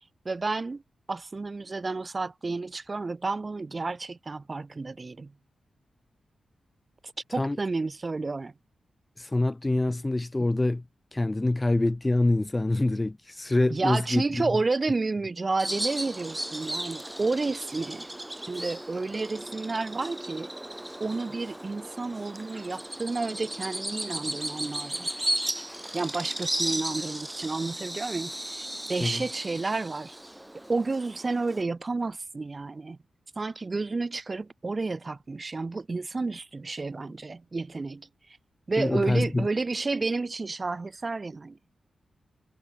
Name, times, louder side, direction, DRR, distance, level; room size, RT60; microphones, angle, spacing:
voice 1, 0.2-0.8 1.1-5.3 7.3-8.5 13.7-18.1 18.5-20.5 21.0-25.1 25.9-30.2 30.7-33.0 33.4-38.1 38.7-41.6, right 3 dB, 40° right, 4.5 m, -31 dB
voice 2, 9.2-10.8 11.1-14.5 29.0-29.2 38.8-39.5, left 2 dB, 20° left, 1.6 m, -25 dB
Bird vocalization bird call bird song, 15.6-31.6, right 1 dB, 10° right, 2.2 m, -35 dB
cardioid pair, 60°, 0 cm